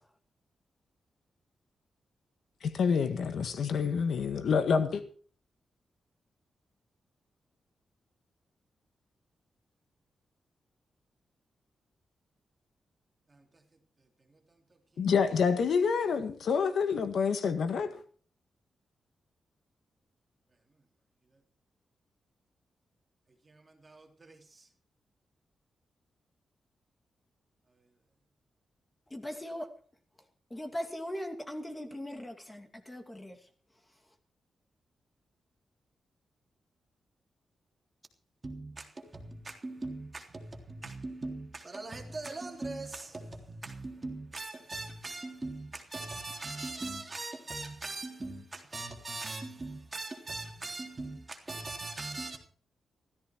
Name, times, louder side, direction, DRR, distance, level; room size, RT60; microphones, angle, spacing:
voice 1, 2.6-5.0 15.0-17.9, left 6 dB, 75° left, 1.7 m, -27 dB
voice 2, 13.3-13.6 14.3-14.6 14.9-15.0 23.4-24.7 38.4-52.4, right 2 dB, 25° right, 3.4 m, -41 dB
voice 3, 29.1-29.7 30.5-33.4, equal, 15° left, 2.6 m, -39 dB
16.0 x 14.5 x 4.6 m
wide cardioid pair, 120°, 0 cm